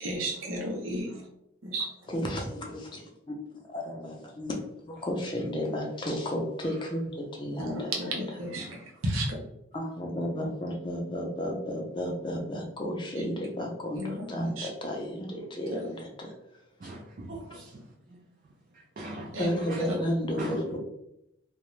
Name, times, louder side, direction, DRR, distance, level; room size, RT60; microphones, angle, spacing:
voice 1, 0.0-1.1 1.6-1.9 7.6-8.7 9.0-9.3 14.0-14.3 14.6-14.7 19.3-19.5, right 1 dB, 80° right, -2 dB, 0.7 m, -32 dB
voice 2, 2.1-3.3 3.7-8.4 9.7-16.3 19.4-20.8, equal, 25° left, 1 dB, 0.4 m, -33 dB
voice 3, 16.8-17.7 18.1-18.2 19.0-19.4 19.7-19.8 20.4-20.6, right 1 dB, 40° right, -2 dB, 0.3 m, -40 dB
2.4 x 2.2 x 3.0 m, 0.82 s
head